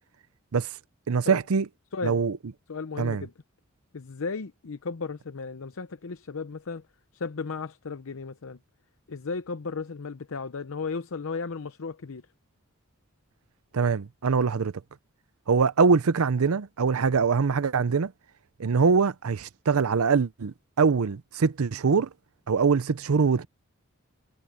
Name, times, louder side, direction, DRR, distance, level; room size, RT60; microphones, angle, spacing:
voice 1, 1.1-1.7 2.0-2.4 3.0-3.2 13.7-14.7 15.5-18.1 18.6-22.1 22.5-23.5, right 5 dB, 90° right, 0.6 m, -23 dB
voice 2, 2.7-3.3 3.9-6.8 7.1-8.6 9.1-12.2, left 4 dB, 75° left, 0.7 m, -35 dB
head